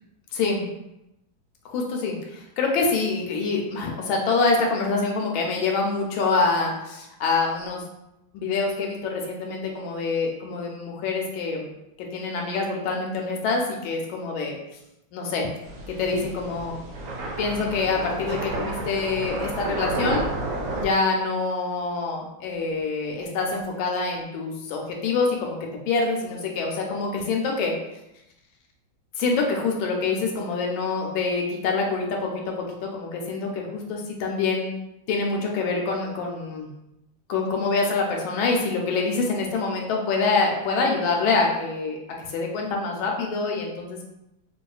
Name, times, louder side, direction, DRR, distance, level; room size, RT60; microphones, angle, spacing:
voice 1, 0.3-0.6 1.6-7.8 8.3-11.7 12.1-14.6 15.1-15.5 15.9-16.8 17.4-20.3 20.7-25.6 25.9-27.8 29.2-34.8 35.1-36.7 37.3-44.1, left 4 dB, 90° left, 0 dB, 1.4 m, -26 dB
sound 1, 15.6-20.8, right 2 dB, 70° right, 0.8 m, -31 dB
4.2 x 2.3 x 2.3 m, 0.87 s
omnidirectional pair, 2.2 m